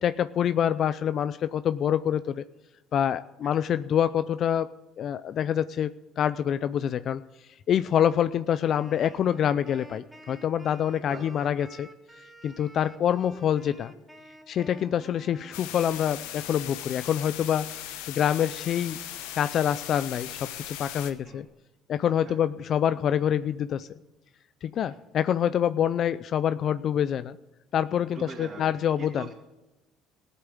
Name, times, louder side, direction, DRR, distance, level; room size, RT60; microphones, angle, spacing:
voice 1, 0.0-2.4 2.9-4.7 5.0-5.9 6.2-7.2 7.7-11.9 12.4-13.9 14.5-17.7 18.1-19.0 19.3-21.5 21.9-23.9 24.6-27.4 27.7-29.3, left 9 dB, 55° left, 13 dB, 0.5 m, -26 dB
Wind instrument woodwind instrument, 8.6-17.0, right 1 dB, 10° right, 2.8 m, -50 dB
voice 2, 11.1-11.5 12.8-12.9 14.9-15.0 21.2-21.4 22.2-22.4 24.9-25.0 28.1-28.7 29.0-29.3, right 4 dB, 40° right, -4 dB, 3.2 m, -42 dB
sound 1, 15.5-21.1, left 11 dB, 85° left, 1.2 m, -38 dB
15.5 x 8.2 x 9.3 m, 0.99 s
supercardioid pair, 80°, 0 cm